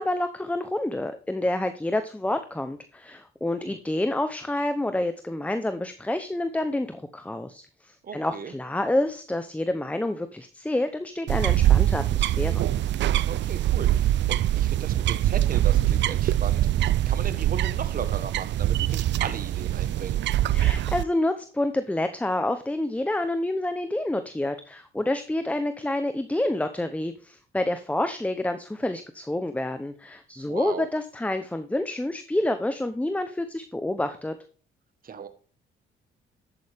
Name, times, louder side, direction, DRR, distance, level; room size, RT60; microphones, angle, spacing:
voice 1, 0.0-12.6 20.5-34.4, left 1 dB, 5° left, 9 dB, 0.8 m, -28 dB
voice 2, 8.0-8.5 13.3-16.8 17.1-20.2 30.4-30.9 35.0-35.3, right 7 dB, 45° right, 10 dB, 1.4 m, -36 dB
sound 1, 11.3-21.0, right 13 dB, 65° right, 0.5 m, -23 dB
11.5 x 8.7 x 3.5 m, 0.39 s
cardioid pair, 90°, 20 cm